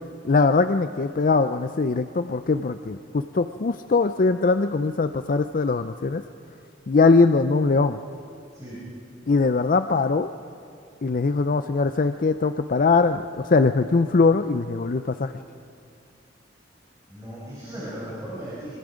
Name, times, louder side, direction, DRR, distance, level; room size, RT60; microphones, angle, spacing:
voice 1, 0.2-6.2 6.9-8.0 9.3-10.3 11.0-15.3, left 4 dB, 45° left, 10 dB, 0.5 m, -21 dB
voice 2, 17.1-18.7, equal, 20° right, -8 dB, 6.1 m, -36 dB
25.5 x 24.5 x 5.1 m, 2.4 s
head